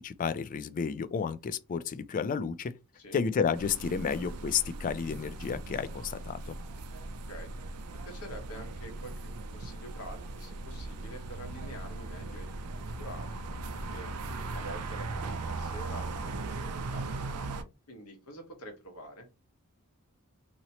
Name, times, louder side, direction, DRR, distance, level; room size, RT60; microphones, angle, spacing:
voice 1, 0.0-2.7 3.1-6.6, left 6 dB, 35° left, 0.3 m, -31 dB
sound 1, 3.6-17.6, right 3 dB, 85° right, 0.5 m, -39 dB
voice 2, 8.0-14.1 14.5-17.3 17.9-19.3, equal, 75° left, 1.2 m, -47 dB
2.9 x 2.8 x 2.8 m
head